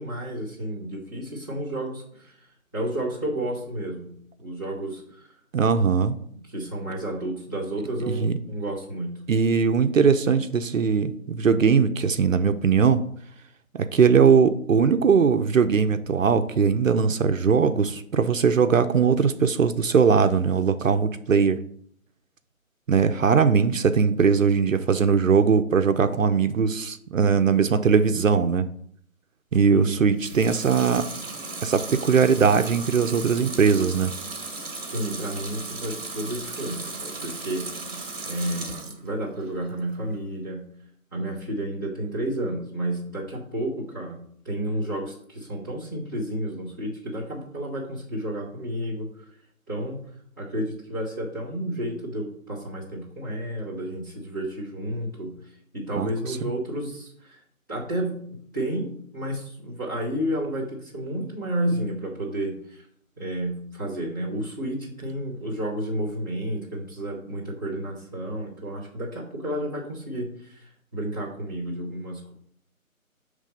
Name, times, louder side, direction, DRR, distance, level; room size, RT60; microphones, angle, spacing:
voice 1, 0.0-2.5 2.7-4.1 4.4-5.3 6.3-9.1 29.7-30.0 34.9-37.6 38.2-40.6 41.1-44.2 44.4-49.1 49.7-50.0 50.4-57.4 57.7-58.2 58.5-62.8 63.2-72.3, right 1 dB, 15° left, -10 dB, 1.0 m, -31 dB
voice 2, 5.5-6.1 8.2-8.4 9.3-13.0 13.7-21.6 22.9-28.7 29.5-31.1 31.6-34.1 56.0-56.1, right 6 dB, 65° right, 9 dB, 0.5 m, -20 dB
Water tap faucet / Sink (filling or washing) / Liquid, 30.1-39.1 39.5-40.2, right 3 dB, 40° right, 1.2 m, -36 dB
6.4 x 3.3 x 5.2 m, 0.64 s
figure-of-eight pair, 175°, 42 cm